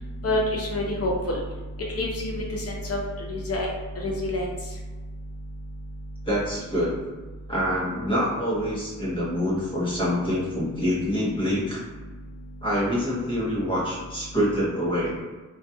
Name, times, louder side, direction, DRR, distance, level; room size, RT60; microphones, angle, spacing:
voice 1, 0.2-1.4 1.9-3.0 3.3-3.7 4.0-4.5, left 1 dB, 45° left, -1 dB, 0.6 m, -27 dB
voice 2, 6.3-7.0 7.5-11.8 12.6-15.2, equal, 15° left, -7 dB, 0.8 m, -26 dB
2.8 x 2.4 x 2.2 m, 1.3 s
wide cardioid pair, 135°, 33 cm